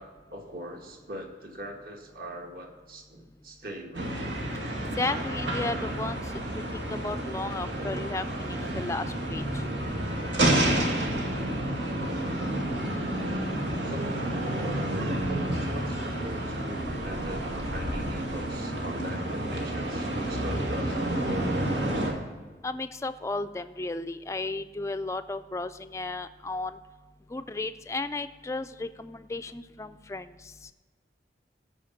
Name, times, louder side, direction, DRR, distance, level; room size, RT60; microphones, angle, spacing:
voice 1, 0.0-4.3 6.5-6.8 13.8-22.0, right 1 dB, 55° right, 1 dB, 1.7 m, -41 dB
sound 1, 3.9-22.1, right 1 dB, 85° right, 2.1 m, -30 dB
voice 2, 5.0-6.2 6.7-9.4 22.6-26.7 27.3-30.3, left 2 dB, 15° left, 10 dB, 0.3 m, -34 dB
14.5 x 5.1 x 7.1 m, 1.3 s
head